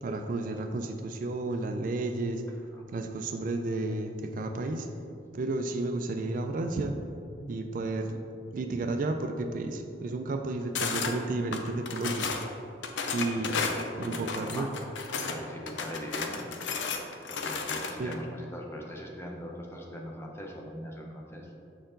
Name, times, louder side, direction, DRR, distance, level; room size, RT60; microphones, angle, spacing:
voice 1, 0.0-2.4 2.9-4.9 5.3-6.9 7.5-8.2 8.5-12.3 13.1-13.6 14.0-14.7 18.0-18.2, right 2 dB, 45° right, 6 dB, 0.3 m, -32 dB
sound 1, 10.7-11.1 11.5-12.5 12.8-15.4 15.7-18.2, left 5 dB, 85° left, 0.6 m, -33 dB
voice 2, 13.3-14.7 15.2-16.6 17.3-21.5, equal, 15° left, -1 dB, 0.7 m, -41 dB
6.7 x 4.4 x 3.8 m, 2.6 s
head